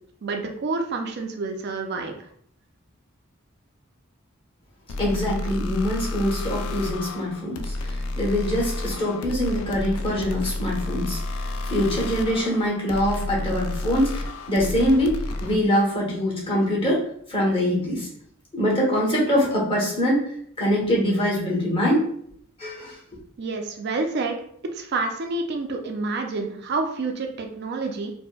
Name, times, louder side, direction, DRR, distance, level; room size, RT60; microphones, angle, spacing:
voice 1, 0.2-2.1 23.4-24.4 24.7-28.1, right 3 dB, 55° right, 3 dB, 0.4 m, -28 dB
sound 1, 4.9-15.6, left 2 dB, 90° left, 0.4 m, -31 dB
voice 2, 5.0-17.0 17.3-18.1 18.5-22.1 22.6-23.0, equal, 25° left, -5 dB, 1.0 m, -24 dB
4.3 x 2.1 x 2.3 m, 0.65 s
head